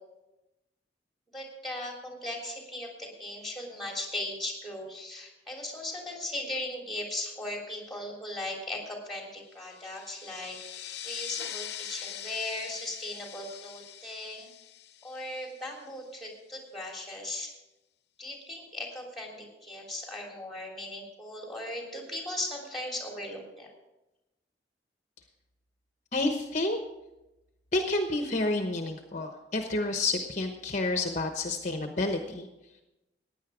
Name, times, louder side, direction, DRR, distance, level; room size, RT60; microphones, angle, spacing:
voice 1, 1.3-10.6 11.0-14.5 15.0-17.5 18.2-23.7, left 1 dB, ahead, 0 dB, 3.3 m, -38 dB
sound 1, 9.6-15.8, left 11 dB, 70° left, 0.8 m, -42 dB
voice 2, 26.1-26.8 27.7-32.5, left 2 dB, 45° left, 5 dB, 1.0 m, -29 dB
16.0 x 9.9 x 4.9 m, 0.98 s
head